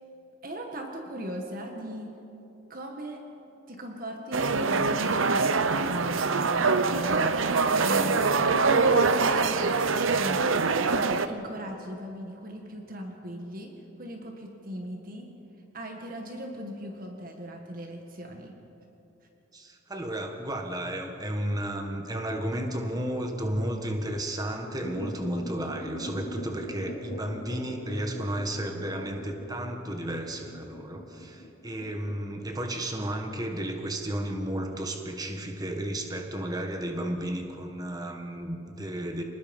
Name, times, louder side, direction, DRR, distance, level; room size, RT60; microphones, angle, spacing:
voice 1, 0.4-2.1 2.7-3.2 3.7-7.3 7.8-8.2 8.5-10.4 10.9-13.7 14.0-15.3 15.7-18.6, equal, 45° right, 2 dB, 1.8 m, -38 dB
sound 1, 4.3-11.3, right 4 dB, 75° right, 0.9 m, -24 dB
voice 2, 19.5-39.2, right 1 dB, 20° right, 3 dB, 1.6 m, -33 dB
sound 2, 24.8-32.6, equal, 65° left, 4.0 m, -42 dB
27.0 x 20.0 x 5.5 m, 2.9 s
head